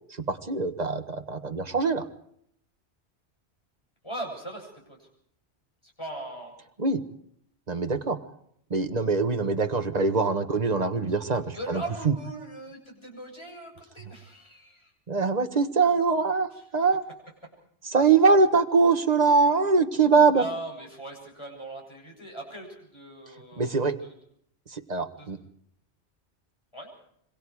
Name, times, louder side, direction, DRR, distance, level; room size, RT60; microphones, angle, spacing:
voice 1, 0.2-2.0 6.8-7.0 7.7-8.2 8.7-12.1 15.1-17.0 17.8-20.4 23.6-24.0 24.7-25.4, right 4 dB, 35° right, 8 dB, 1.5 m, -23 dB
voice 2, 4.0-5.1 5.8-6.5 11.5-14.9 20.3-24.1 25.2-25.3 26.7-26.9, right 1 dB, 25° left, 1 dB, 7.6 m, -39 dB
26.5 x 24.5 x 4.9 m, 0.69 s
omnidirectional pair, 1.2 m